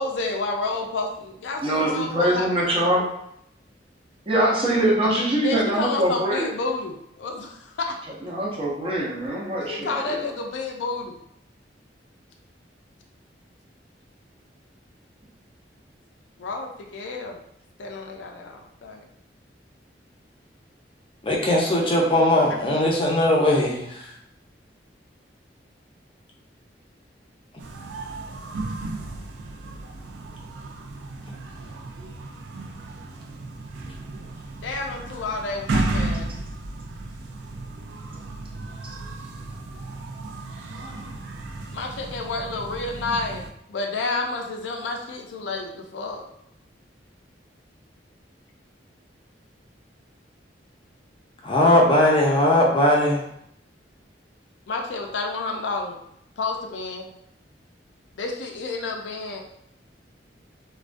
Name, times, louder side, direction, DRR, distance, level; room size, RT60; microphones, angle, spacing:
voice 1, 0.0-2.9 5.4-8.0 9.7-11.1 16.4-17.4 17.8-19.1 34.6-36.3 41.7-43.4 43.7-46.2 54.7-56.0 56.4-57.1 58.2-59.4, left 3 dB, 90° left, 2 dB, 0.4 m, -30 dB
voice 2, 1.6-3.1 4.3-6.5 8.2-10.2, right 1 dB, 30° right, -4 dB, 0.6 m, -23 dB
voice 3, 21.2-24.1 31.3-31.4 51.4-53.2, left 1 dB, 30° left, -1 dB, 0.5 m, -19 dB
sound 1, 27.6-43.5, right 2 dB, 85° right, 0.3 m, -34 dB
2.3 x 2.2 x 2.5 m, 0.75 s
head